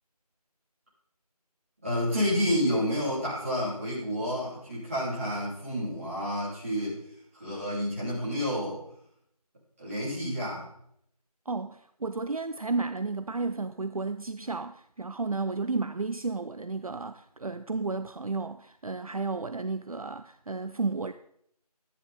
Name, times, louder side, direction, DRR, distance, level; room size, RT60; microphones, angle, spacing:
voice 1, 1.8-7.0 7.3-8.8 9.8-10.7, equal, 20° right, 4.2 m, -29 dB
voice 2, 11.5-21.1, right 3 dB, 60° right, 0.5 m, -32 dB
12.0 x 10.0 x 3.8 m
figure-of-eight pair, 180°, 20 cm